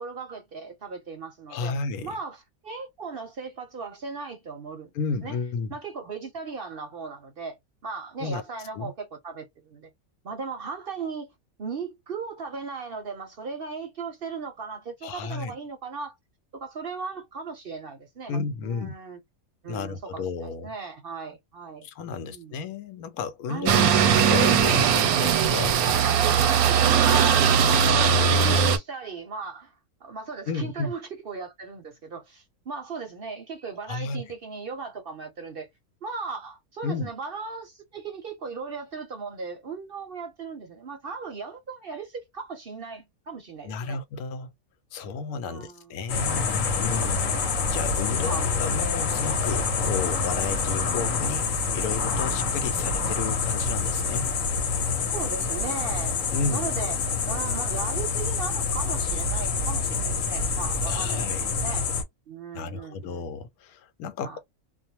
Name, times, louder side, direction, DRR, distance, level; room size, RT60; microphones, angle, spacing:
voice 1, 0.0-1.8 2.0-4.9 5.2-5.4 5.7-9.9 10.2-11.3 11.6-16.1 16.5-19.2 19.6-21.9 22.1-22.6 23.5-23.9 26.5-29.7 30.0-35.7 36.0-44.0 45.4-46.0 46.9-47.9 48.2-48.5 55.1-56.2 56.5-57.0 57.3-61.9 62.3-63.2 64.2-64.4, right 4 dB, 55° right, 0.7 m, -37 dB
voice 2, 1.5-2.1 4.9-5.7 8.2-8.4 8.7-8.9 15.0-15.5 18.3-18.9 19.7-20.7 21.8-25.8 30.5-30.9 33.9-34.2 36.8-37.1 43.6-44.5 44.9-47.2 47.7-54.3 56.3-56.7 60.8-61.4 62.5-64.4, left 5 dB, 90° left, 1.1 m, -32 dB
sound 1, 23.6-28.8, right 7 dB, 85° right, 1.1 m, -20 dB
sound 2, 46.1-62.0, left 4 dB, 65° left, 1.1 m, -27 dB
2.5 x 2.0 x 2.7 m
omnidirectional pair, 1.5 m